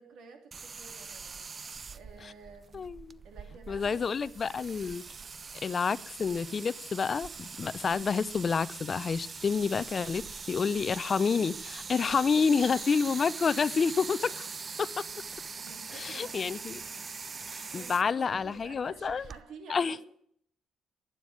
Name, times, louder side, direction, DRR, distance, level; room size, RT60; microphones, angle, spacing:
voice 1, 0.0-1.4 1.9-2.9 3.2-4.8 6.1-6.3 12.1-12.9 14.2-14.6 15.6-17.0 17.7-20.0, right 5 dB, 80° right, 3.0 m, -51 dB
sound 1, 0.5-19.4, right 5 dB, 40° right, 0.5 m, -42 dB
voice 2, 2.7-3.2 3.7-5.0 5.6-14.5 14.8-14.9 16.0-16.8 17.5-19.2 19.7-20.0, left 5 dB, 40° left, 0.6 m, -29 dB
12.0 x 10.0 x 9.5 m
cardioid pair, 90°, 0 cm